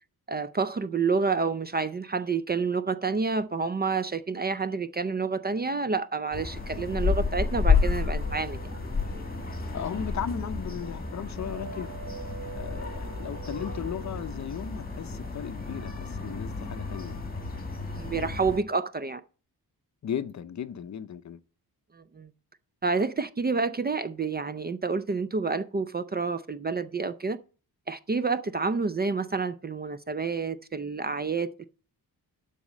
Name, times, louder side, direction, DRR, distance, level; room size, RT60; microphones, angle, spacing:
voice 1, 0.3-8.6 17.8-19.2 21.9-22.3 22.8-27.4 27.9-31.6, right 4 dB, 25° right, 0.4 m, -29 dB
sound 1, 6.3-18.6, left 4 dB, 20° left, 1.8 m, -31 dB
sound 2, 7.4-14.2, right 6 dB, 45° right, 1.2 m, -46 dB
voice 2, 9.7-11.9 12.5-17.2 20.0-21.4, left 8 dB, 45° left, 0.6 m, -36 dB
12.0 x 4.2 x 7.3 m
wide cardioid pair, 135°, 39 cm